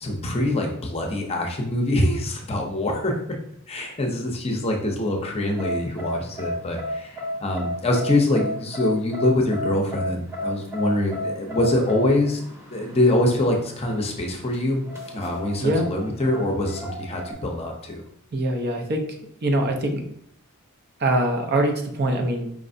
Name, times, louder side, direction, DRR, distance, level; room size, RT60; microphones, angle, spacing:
voice 1, 0.0-3.2 3.7-12.4 12.7-14.8 15.1-18.0, left 1 dB, 30° left, 2 dB, 0.6 m, -24 dB
sound 1, 5.4-17.3, left 1 dB, 15° right, 0.9 m, -33 dB
voice 2, 18.3-20.0 21.0-22.5, right 1 dB, 50° right, 3 dB, 0.6 m, -23 dB
4.9 x 3.2 x 2.6 m, 0.69 s
head